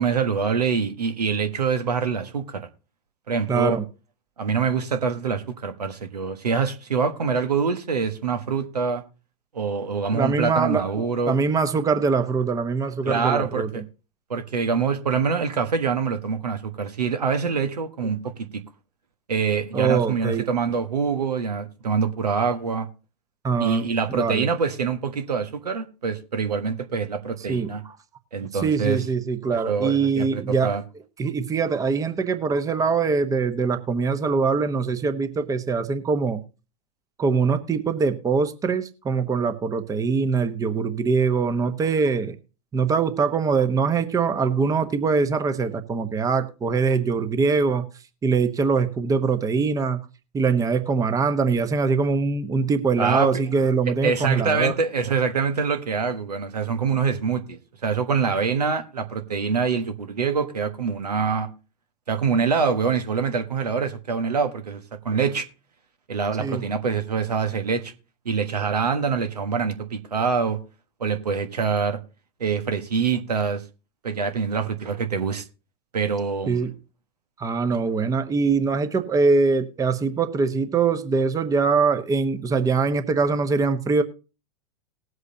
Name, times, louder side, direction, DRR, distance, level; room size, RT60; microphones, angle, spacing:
voice 1, 0.0-2.7 3.3-3.8 4.4-9.0 9.5-11.4 13.0-13.8 14.3-18.6 19.3-22.9 23.6-27.8 28.3-29.0 29.6-30.8 53.0-53.4 54.0-61.5 62.1-64.8 65.0-65.5 66.1-67.9 68.2-70.6 71.0-72.0 72.4-73.6 74.0-75.4 75.9-76.7, right 5 dB, 80° right, 1.3 m, -25 dB
voice 2, 3.5-3.8 10.1-10.9 11.2-13.8 19.7-20.4 23.4-23.9 24.1-24.5 27.5-28.0 28.5-30.8 31.2-36.4 37.2-42.4 42.7-47.9 48.2-50.0 50.3-54.7 66.4-66.6 76.5-76.7 77.4-84.0, right 4 dB, 15° right, 1.0 m, -23 dB
19.5 x 8.0 x 2.8 m
figure-of-eight pair, 95°, 20 cm